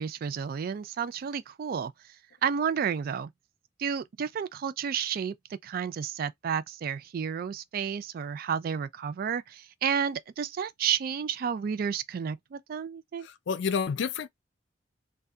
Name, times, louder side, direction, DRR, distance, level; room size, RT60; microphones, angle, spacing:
voice 1, 0.0-1.9 2.4-3.3 3.8-5.3 5.6-13.3, right 7 dB, 55° right, 0.3 m, -31 dB
voice 2, 13.2-14.3, left 6 dB, 70° left, 0.4 m, -29 dB
2.6 x 2.2 x 2.3 m
head